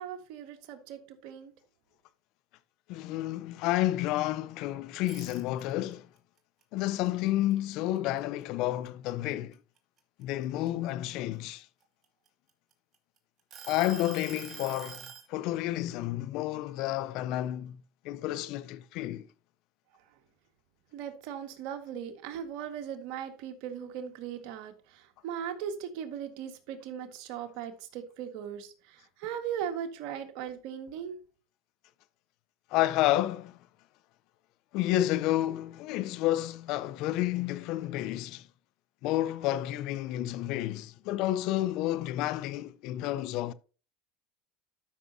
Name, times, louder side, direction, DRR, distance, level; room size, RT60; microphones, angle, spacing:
voice 1, 0.0-1.5 19.9-20.0 20.9-31.2, right 8 dB, 70° right, 1.7 m, -38 dB
voice 2, 2.9-6.1 6.7-9.6 10.2-11.7 13.7-19.3 32.7-33.6 34.7-38.5 39.0-43.5, left 14 dB, 65° left, 0.7 m, -30 dB
sound 1, 5.0-5.9 6.4-8.2 8.6-8.9 9.3-11.1 11.8-13.0 13.5-15.3, right 8 dB, 40° right, 2.3 m, -46 dB
12.5 x 6.2 x 2.8 m
supercardioid pair, 100°, 0 cm